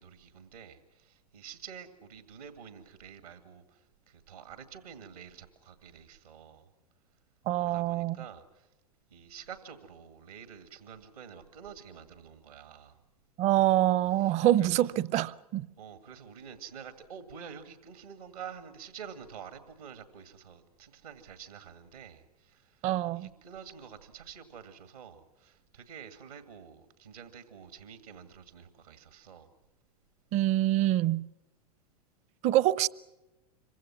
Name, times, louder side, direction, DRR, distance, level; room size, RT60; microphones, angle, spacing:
voice 1, 0.0-6.7 7.6-8.7 9.1-13.0 14.1-14.9 15.8-29.5, right 7 dB, 80° right, 2.1 m, -48 dB
voice 2, 7.5-8.2 13.4-15.7 22.8-23.3 30.3-31.2 32.4-32.9, right 14 dB, 35° right, 0.7 m, -25 dB
26.5 x 24.5 x 6.0 m
figure-of-eight pair, 95°, 19 cm